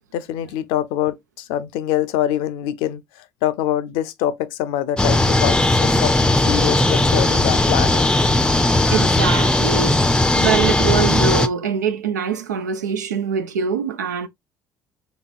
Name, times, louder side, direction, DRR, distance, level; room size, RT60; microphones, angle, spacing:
voice 1, 0.1-3.0 3.4-8.1, left 12 dB, 70° left, 0.5 m, -24 dB
sound 1, 5.0-11.5, left 2 dB, 10° left, 0.5 m, -17 dB
voice 2, 8.9-14.3, right 6 dB, 90° right, 0.4 m, -23 dB
3.9 x 3.5 x 2.4 m
hypercardioid pair, 55°, 9 cm